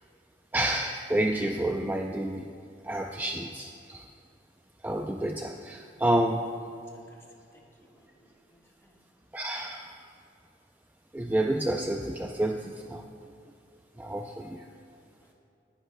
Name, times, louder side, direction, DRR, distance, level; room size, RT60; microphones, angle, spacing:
voice 1, 0.5-2.5 2.8-4.1 4.8-6.5 9.3-9.9 11.1-13.1 14.0-14.7, right 1 dB, 10° right, 3 dB, 0.4 m, -29 dB
voice 2, 6.9-9.0 15.2-15.3, equal, 15° left, -1 dB, 1.5 m, -61 dB
19.0 x 10.0 x 2.2 m, 2.6 s
head